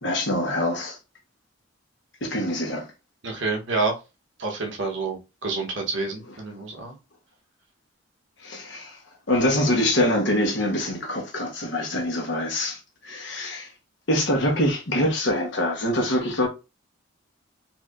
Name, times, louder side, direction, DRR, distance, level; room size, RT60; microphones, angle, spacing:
voice 1, 0.0-1.0 2.2-2.9 8.4-9.0 9.3-13.7 14.1-16.5, left 1 dB, 60° left, 1.1 m, -24 dB
voice 2, 3.2-4.0 4.4-6.9, right 3 dB, 60° right, 1.0 m, -28 dB
4.4 x 2.7 x 2.5 m
head